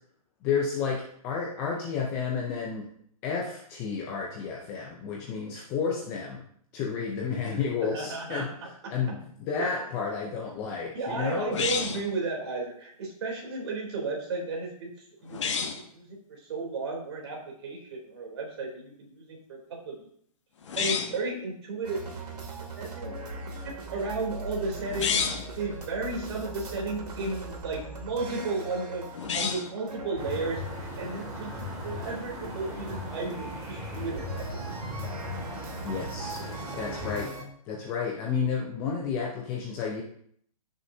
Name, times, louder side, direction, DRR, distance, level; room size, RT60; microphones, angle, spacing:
voice 1, 0.4-2.9 3.2-6.5 6.7-8.5 8.9-11.6 35.8-36.4 36.8-37.4 37.7-40.0, left 6 dB, 10° left, -1 dB, 0.5 m, -31 dB
voice 2, 7.9-8.5 8.8-8.9 9.6-9.8 10.9-14.9 15.2-15.7 15.9-20.1 20.7-22.0 22.2-22.4 22.8-23.1 23.9-31.5 31.8-34.2, right 3 dB, 45° right, -1 dB, 3.3 m, -34 dB
sound 1, 11.5-12.1 15.3-15.8 20.6-21.2 24.8-25.5 29.1-29.8, left 6 dB, 50° left, 1.2 m, -30 dB
sound 2, 21.8-37.4, right 2 dB, 90° right, 2.9 m, -40 dB
sound 3, 30.2-37.2, left 1 dB, 15° right, 2.4 m, -38 dB
15.0 x 6.2 x 2.7 m, 0.65 s
hypercardioid pair, 170°, 20 cm